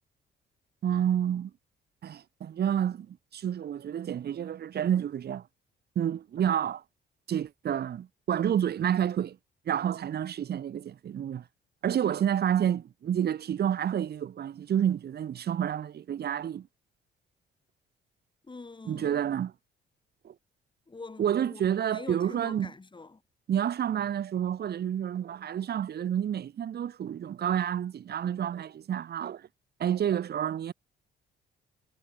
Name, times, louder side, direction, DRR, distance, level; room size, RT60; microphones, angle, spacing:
voice 1, 0.8-1.5 2.0-5.4 5.9-6.8 7.3-9.4 9.7-11.4 11.8-16.7 18.9-19.5 20.2-20.3 21.2-22.7 23.5-29.5 29.8-30.7, right 9 dB, 55° right, 1.1 m, -29 dB
voice 2, 18.4-19.2 20.9-23.2, left 3 dB, 25° left, 5.3 m, -45 dB
cardioid pair, 90°, 20 cm